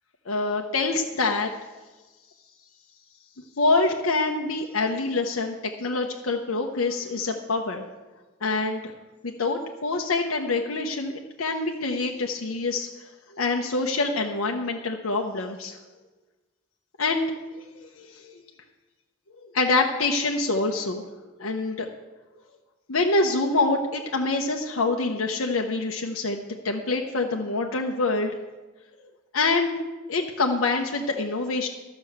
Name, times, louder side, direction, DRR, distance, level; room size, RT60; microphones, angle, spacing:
voice 1, 0.3-1.5 3.6-7.8 8.4-8.8 9.2-12.9 13.3-15.8 17.0-17.3 17.8-18.3 19.5-21.0 21.4-21.9 22.9-28.3 29.3-29.8 30.1-31.7, left 3 dB, 80° left, 1 dB, 0.9 m, -25 dB
12.5 x 6.2 x 7.8 m, 1.2 s
head